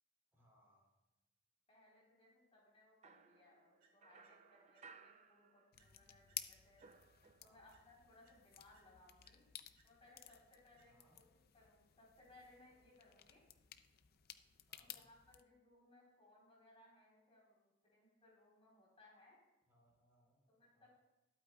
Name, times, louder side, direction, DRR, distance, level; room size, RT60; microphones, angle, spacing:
voice 1, 0.3-1.0 7.4-7.7 10.8-11.2 14.7-15.0 19.7-20.4 20.7-20.9, equal, 15° right, -4 dB, 3.5 m, -73 dB
voice 2, 1.7-6.8 7.4-9.4 9.8-11.2 11.5-13.4 14.8-19.4 20.5-20.9, left 2 dB, 30° left, -4 dB, 3.8 m, -66 dB
sound 1, 3.0-6.0 6.3-7.8, right 5 dB, 35° right, 0.5 m, -63 dB
sound 2, 3.8-5.3 5.8-7.3 7.7-11.3, right 4 dB, 80° right, 2.8 m, -78 dB
sound 3, 5.7-15.4, left 12 dB, 55° left, 0.5 m, -55 dB
21.0 x 8.6 x 2.3 m, 1.0 s
head